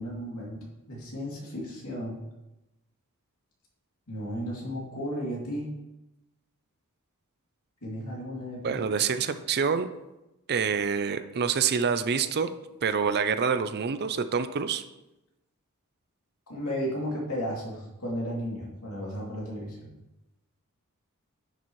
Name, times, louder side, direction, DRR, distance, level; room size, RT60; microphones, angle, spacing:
voice 1, 0.0-2.2 4.1-5.7 7.8-8.9 16.5-19.9, equal, 75° left, -3 dB, 2.8 m, -34 dB
voice 2, 8.6-9.9 10.5-12.5 12.8-14.8, right 6 dB, 50° right, 11 dB, 0.5 m, -26 dB
10.0 x 7.1 x 3.1 m, 0.96 s
head